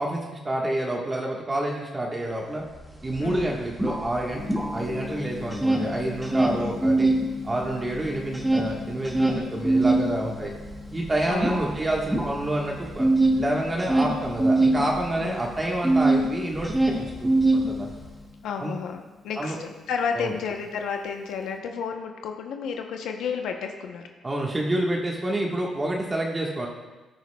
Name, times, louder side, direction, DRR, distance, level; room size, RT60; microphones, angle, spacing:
voice 1, 0.0-2.6 3.0-4.4 4.7-7.1 7.4-10.5 10.9-17.9 18.6-18.7 19.4-19.6 20.1-20.3 24.2-26.7, right 1 dB, 25° right, -1 dB, 1.3 m, -28 dB
sound 1, 2.7-2.8 3.1-5.1 5.4-7.2 7.6-16.3 16.5-18.1, right 2 dB, 5° right, 1.7 m, -23 dB
voice 2, 3.2-3.5 6.6-6.8 11.3-11.7 15.2-15.4 18.4-24.0, left 6 dB, 80° left, 4 dB, 0.7 m, -32 dB
Gong, 4.3-21.6, left 3 dB, 20° left, 1.9 m, -42 dB
14.5 x 9.2 x 2.3 m, 1.2 s
cardioid pair, 90°, 0 cm